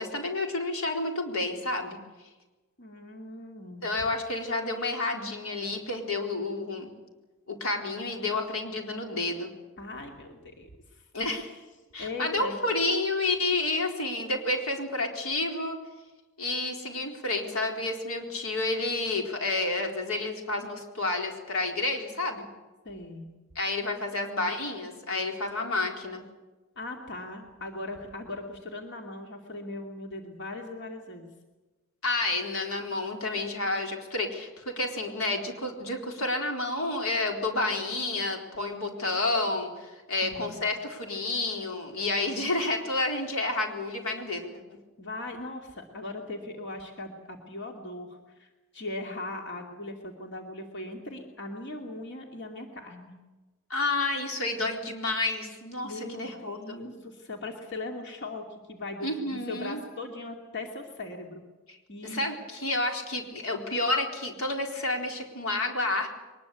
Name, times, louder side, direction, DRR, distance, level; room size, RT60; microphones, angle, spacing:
voice 1, 0.0-2.0 3.8-6.9 7.5-9.5 11.1-11.5 11.9-15.8 16.4-22.5 23.6-26.2 32.0-44.5 53.7-56.8 59.0-59.8 61.7-61.8 62.0-66.1, left 2 dB, 90° left, 2 dB, 4.2 m, -30 dB
voice 2, 2.8-3.8 9.8-11.0 11.3-11.6 12.0-12.6 22.8-23.3 26.8-31.3 40.2-40.6 45.0-53.1 55.8-61.4 61.9-62.2, left 2 dB, 55° left, 2 dB, 2.7 m, -39 dB
23.0 x 20.5 x 8.4 m, 1.2 s
head